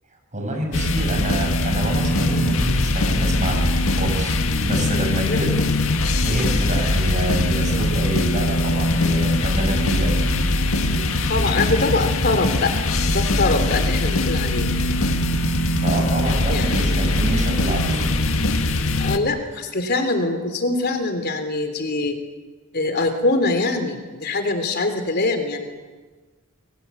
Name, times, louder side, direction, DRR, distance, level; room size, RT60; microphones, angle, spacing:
voice 1, 0.3-5.6 6.2-10.4 15.8-18.1, right 1 dB, 35° right, 3 dB, 7.8 m, -27 dB
sound 1, 0.7-19.2, left 2 dB, 70° left, 1.9 m, -21 dB
voice 2, 10.9-12.8 13.1-14.7 16.5-16.7 17.0-17.2 19.0-22.2 22.7-25.7, left 2 dB, 50° left, 7 dB, 3.4 m, -23 dB
29.5 x 22.0 x 8.5 m, 1.4 s
head